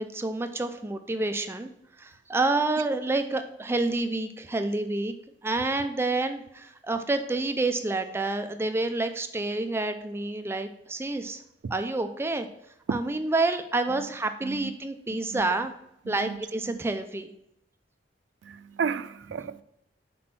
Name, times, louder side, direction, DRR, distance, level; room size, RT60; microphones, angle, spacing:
voice 1, 0.0-1.7 2.0-5.1 5.4-11.4 11.7-12.5 12.9-15.7 16.1-17.3, right 2 dB, 15° right, 0.4 m, -28 dB
voice 2, 16.1-16.4 16.7-16.8 18.4-19.6, right 6 dB, 90° right, 0.4 m, -33 dB
6.1 x 4.2 x 6.0 m
head